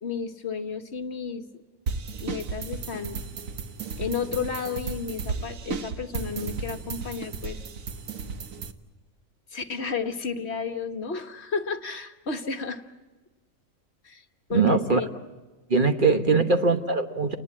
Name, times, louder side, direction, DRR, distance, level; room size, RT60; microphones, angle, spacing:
voice 1, 0.0-1.4 2.2-3.2 4.0-7.6 9.5-12.8 14.0-14.2 14.5-15.1 16.3-16.6, left 5 dB, 50° left, 7 dB, 1.4 m, -32 dB
sound 1, 1.9-8.7, right 5 dB, 70° right, 1.6 m, -34 dB
voice 2, 14.5-15.0 15.7-17.3, right 4 dB, 40° right, 7 dB, 1.2 m, -21 dB
29.5 x 19.5 x 8.7 m, 1.3 s
omnidirectional pair, 1.5 m